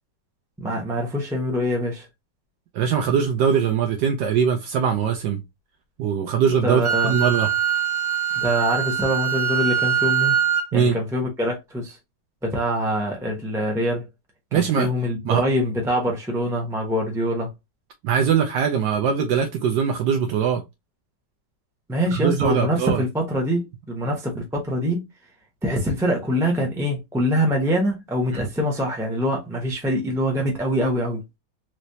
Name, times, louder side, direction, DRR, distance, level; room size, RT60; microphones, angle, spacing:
voice 1, 0.6-2.1 6.6-7.1 8.4-10.4 10.7-12.0 12.4-14.0 14.5-17.5 21.9-25.0 25.6-31.4, equal, 5° right, 0.4 m, -24 dB
voice 2, 2.7-5.4 6.0-7.5 10.7-11.0 14.5-14.9 15.2-15.4 18.0-20.6 22.1-23.0 28.3-28.5, right 7 dB, 80° right, 1.2 m, -21 dB
Wind instrument woodwind instrument, 6.8-10.7, right 9 dB, 45° right, 1.2 m, -23 dB
3.2 x 3.0 x 2.7 m
omnidirectional pair, 1.8 m